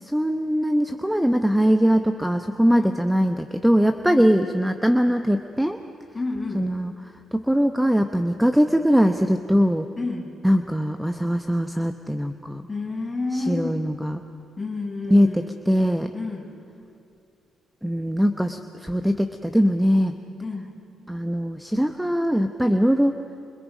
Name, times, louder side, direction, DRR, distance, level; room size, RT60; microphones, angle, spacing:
voice 1, 0.0-5.8 6.5-6.9 7.3-9.9 10.4-12.6 13.3-14.2 15.1-16.1 17.8-20.2 21.1-23.1, equal, 5° right, 7 dB, 0.9 m, -21 dB
voice 2, 6.1-6.7 10.0-10.3 12.7-13.8 14.6-15.6 16.1-16.5 20.4-20.8, left 3 dB, 20° left, -2 dB, 6.0 m, -30 dB
28.5 x 27.0 x 5.1 m, 2.5 s
cardioid pair, 90°, 0 cm